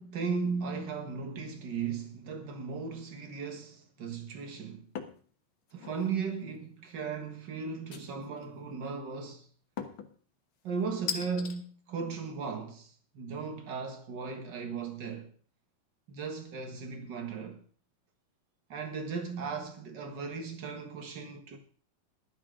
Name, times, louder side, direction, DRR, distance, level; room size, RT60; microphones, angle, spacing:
voice 1, 0.0-4.9 5.7-9.5 10.6-15.3 16.1-17.6 18.7-21.6, right 5 dB, 85° right, 0.9 m, -36 dB
sound 1, 4.9-5.2 5.7-6.2 7.9-8.4 9.8-10.1 11.1-11.6, left 7 dB, 75° left, 1.2 m, -38 dB
15.0 x 12.0 x 3.7 m
omnidirectional pair, 4.2 m